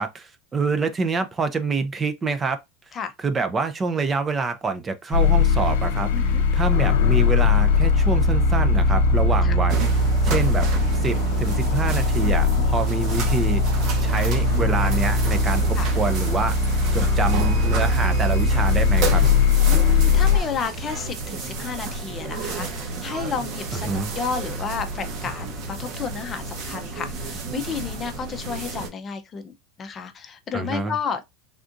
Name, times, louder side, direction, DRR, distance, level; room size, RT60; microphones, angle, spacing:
voice 1, 0.0-2.6 3.2-9.8 10.2-10.7 11.0-13.6 14.0-19.2 23.7-24.1 30.5-31.0, right 4 dB, 20° right, 0.4 m, -26 dB
sound 1, 5.1-20.4, left 3 dB, 80° left, 0.5 m, -20 dB
voice 2, 6.1-6.4 9.4-9.6 12.2-12.6 15.8-16.0 19.7-31.2, left 6 dB, 30° left, 0.5 m, -32 dB
sound 2, 9.7-28.9, right 3 dB, 50° right, 0.9 m, -32 dB
3.5 x 2.5 x 2.5 m
supercardioid pair, 130°, 0 cm